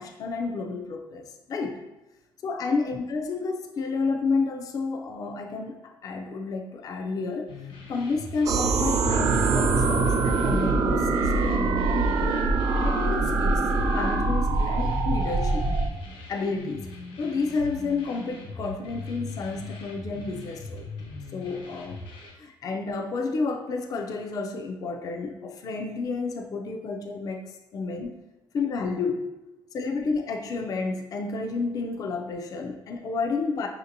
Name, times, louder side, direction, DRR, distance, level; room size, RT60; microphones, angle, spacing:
voice 1, 0.0-1.8 2.4-7.5 7.9-12.5 12.8-15.7 16.3-16.9 17.2-20.9 21.3-22.0 22.4-28.2 28.5-29.3 29.7-33.7, left 4 dB, 45° left, 3 dB, 0.4 m, -30 dB
sound 1, 7.5-22.3, left 3 dB, 80° left, 1.1 m, -41 dB
sound 2, 8.5-15.9, right 3 dB, 40° right, 0.3 m, -23 dB
5.0 x 2.8 x 2.6 m, 1.0 s
cardioid pair, 135°, 9 cm